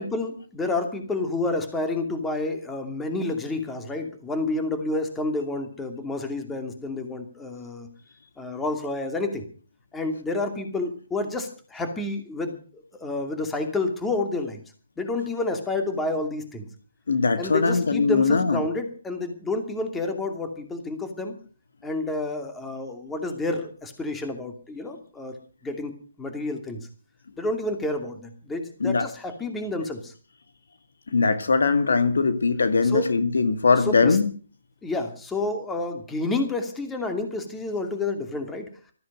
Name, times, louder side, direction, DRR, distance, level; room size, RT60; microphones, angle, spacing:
voice 1, 0.0-7.9 8.4-9.5 9.9-14.6 15.0-16.7 17.4-21.3 21.8-25.3 25.6-26.9 27.4-30.1 32.8-33.2 33.8-34.2 34.8-38.7, left 2 dB, 10° left, 2.5 m, -29 dB
voice 2, 17.1-18.6 28.8-29.0 31.1-34.3, left 4 dB, 75° left, 2.0 m, -21 dB
14.5 x 14.0 x 6.2 m
hypercardioid pair, 150°, 0 cm